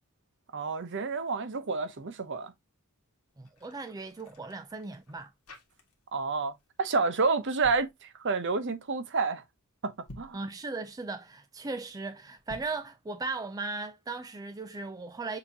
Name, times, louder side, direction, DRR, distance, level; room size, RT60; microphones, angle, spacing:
voice 1, 0.5-2.5 6.1-6.5 6.8-9.4 9.8-10.4, right 4 dB, 55° right, 0.8 m, -29 dB
sound 1, 3.3-6.3 6.5-6.8 7.4-7.9 9.9-10.5 12.4-12.9, left 1 dB, 75° left, 1.6 m, -51 dB
voice 2, 3.4-5.3 10.3-15.4, right 3 dB, 15° right, 0.3 m, -37 dB
6.8 x 2.8 x 2.8 m
head